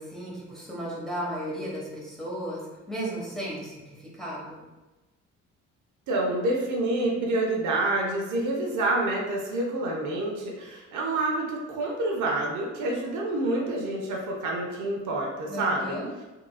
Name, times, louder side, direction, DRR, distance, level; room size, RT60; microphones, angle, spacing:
voice 1, 0.0-2.6 2.9-4.6 15.5-16.1, equal, ahead, -6 dB, 1.2 m, -35 dB
voice 2, 6.1-16.0, right 2 dB, 75° right, -1 dB, 0.8 m, -28 dB
3.7 x 2.9 x 2.3 m, 1.1 s
cardioid pair, 90°, 30 cm